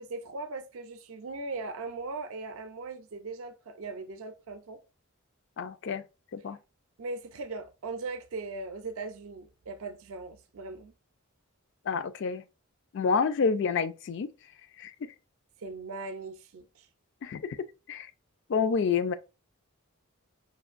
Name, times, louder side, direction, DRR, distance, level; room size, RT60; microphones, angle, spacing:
voice 1, 0.0-4.8 7.0-10.9 15.6-16.9, right 3 dB, 75° right, 0.4 m, -39 dB
voice 2, 5.6-6.0 6.3-6.6 11.9-12.4 12.9-14.3 14.8-14.9 17.2-17.6 17.9-18.1 18.5-19.1, left 5 dB, 55° left, 0.3 m, -28 dB
5.1 x 2.5 x 2.4 m
head